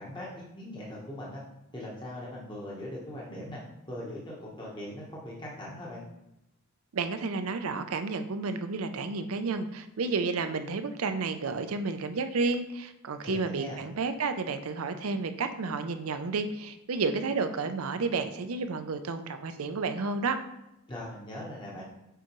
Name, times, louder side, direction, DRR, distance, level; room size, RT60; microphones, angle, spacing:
voice 1, 0.0-1.4 1.7-3.6 3.9-6.0 13.2-13.9 20.9-21.8, left 1 dB, 20° left, -4 dB, 1.1 m, -40 dB
voice 2, 6.9-20.4, right 4 dB, 70° right, 8 dB, 0.5 m, -31 dB
6.8 x 4.9 x 3.0 m, 0.90 s
head